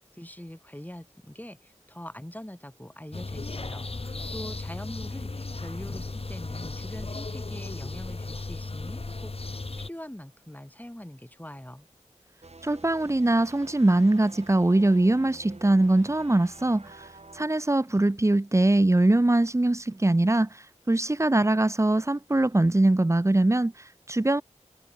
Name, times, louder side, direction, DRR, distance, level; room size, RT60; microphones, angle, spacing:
voice 1, 0.1-9.3 9.8-11.9, left 1 dB, 15° left, 7.0 m, -43 dB
sound 1, 3.1-9.9, left 3 dB, 50° left, 1.3 m, -35 dB
sound 2, 12.4-17.5, right 3 dB, 60° right, 2.3 m, -48 dB
voice 2, 12.6-24.4, right 2 dB, 25° right, 0.7 m, -22 dB
wide cardioid pair, 45°, 13 cm